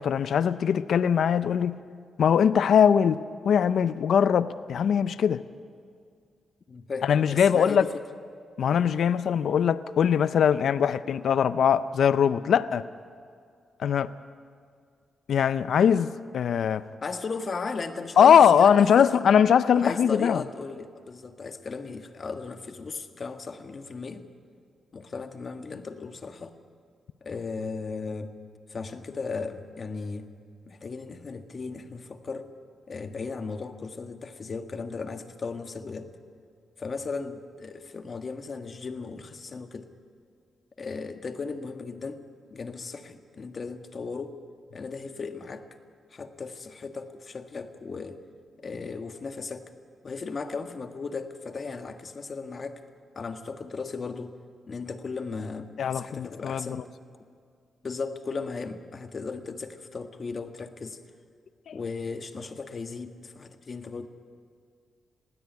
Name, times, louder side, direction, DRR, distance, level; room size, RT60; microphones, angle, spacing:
voice 1, 0.0-1.8 2.2-5.4 7.0-7.8 8.6-12.8 13.8-14.1 15.3-16.8 18.2-20.4 55.8-56.7 61.7-61.8, left 8 dB, 75° left, 0.5 m, -21 dB
voice 2, 6.7-7.9 17.0-19.2 19.7-24.3 24.9-26.6 27.2-28.3 28.7-30.3 30.7-32.5 32.9-36.1 36.8-39.9 40.8-42.2 42.5-44.4 44.7-45.7 46.1-48.2 48.6-49.6 50.0-52.8 53.1-54.4 54.7-56.9 57.8-61.0 61.7-64.1, left 4 dB, 45° left, 1.6 m, -36 dB
20.5 x 16.5 x 9.4 m
cardioid pair, 75°, 0 cm